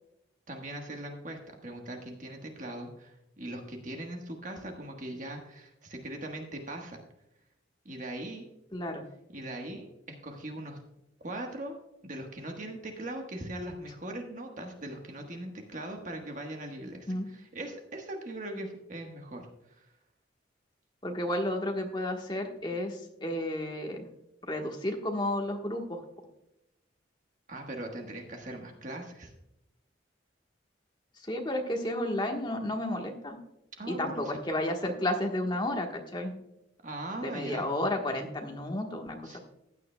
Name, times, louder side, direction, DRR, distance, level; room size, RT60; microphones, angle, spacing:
voice 1, 0.5-7.0 7.8-8.5 9.3-10.8 11.2-11.8 12.0-19.4 19.7-19.9 27.5-29.3 33.8-34.3 36.8-37.7 39.2-39.4, right 1 dB, 40° right, 3 dB, 1.4 m, -40 dB
voice 2, 8.7-9.0 17.1-17.3 21.0-24.1 24.4-26.0 31.3-33.4 33.9-36.3 37.2-39.4, left 1 dB, 25° left, 2 dB, 1.3 m, -32 dB
15.0 x 9.5 x 2.2 m, 0.85 s
head